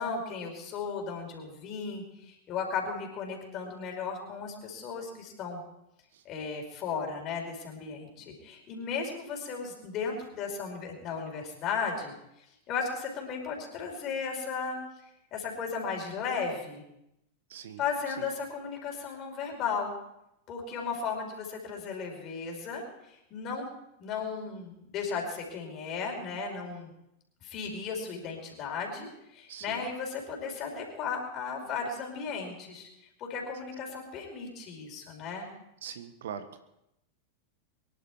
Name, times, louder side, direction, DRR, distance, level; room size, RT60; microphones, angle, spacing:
voice 1, 0.0-5.6 6.2-12.1 12.7-14.8 15.3-16.8 17.8-19.9 20.5-23.7 24.0-26.9 27.4-32.9 33.2-35.5, left 5 dB, 35° left, 1 dB, 5.0 m, -35 dB
voice 2, 17.5-18.3 29.5-29.9 35.8-36.6, right 8 dB, 60° right, 10 dB, 1.2 m, -42 dB
24.0 x 11.5 x 4.6 m, 0.84 s
figure-of-eight pair, 90°, 0 cm